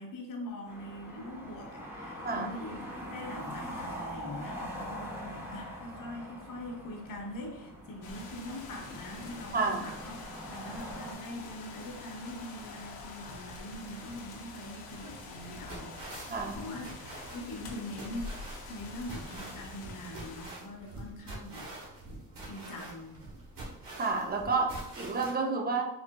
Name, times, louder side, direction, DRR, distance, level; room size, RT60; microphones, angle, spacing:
voice 1, 0.0-10.1 10.5-16.9 17.3-22.0 22.5-23.2, left 1 dB, 60° left, 1 dB, 0.9 m, -43 dB
sound 1, 0.7-11.1, equal, 5° right, 0.9 m, -43 dB
sound 2, 8.0-20.5, left 3 dB, 90° left, 0.7 m, -46 dB
voice 2, 9.5-9.8 16.3-16.7 24.0-25.9, right 4 dB, 25° right, 3 dB, 0.6 m, -30 dB
sound 3, 14.9-25.3, right 2 dB, 65° right, 1.2 m, -46 dB
3.8 x 2.4 x 2.2 m, 0.88 s
cardioid pair, 75°, 36 cm